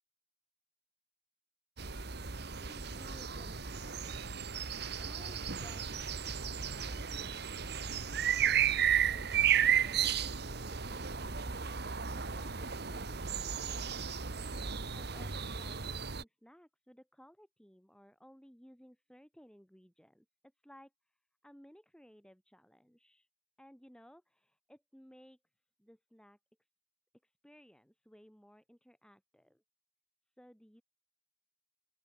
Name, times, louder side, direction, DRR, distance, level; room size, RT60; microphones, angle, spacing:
sound 1, 1.8-16.2, right 8 dB, 60° right, 1.6 m, -34 dB
voice 1, 2.6-4.2 5.0-6.1 6.4-7.9 8.7-14.1 14.9-20.3 20.6-20.9 21.4-23.3 23.6-25.4 25.8-26.4 27.2-29.6 30.4-30.8, equal, 5° left, 5.7 m, -59 dB
open air
head